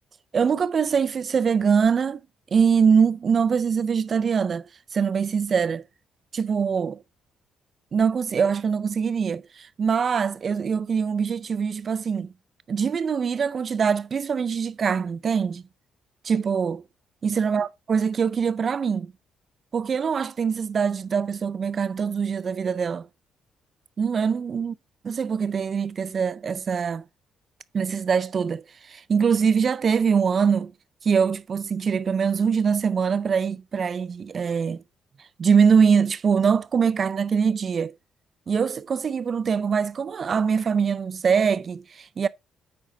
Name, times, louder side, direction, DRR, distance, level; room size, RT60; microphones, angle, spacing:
voice 1, 0.3-2.2 2.5-4.7 4.9-5.8 6.3-7.0 7.9-12.3 12.7-15.6 16.2-16.8 17.2-19.1 19.7-23.1 24.0-24.7 25.1-27.0 27.7-30.7 31.0-34.8 35.4-37.9 38.5-42.3, right 6 dB, 45° right, 0.4 m, -23 dB
8.5 x 5.5 x 3.7 m
cardioid pair, 90°, 0 cm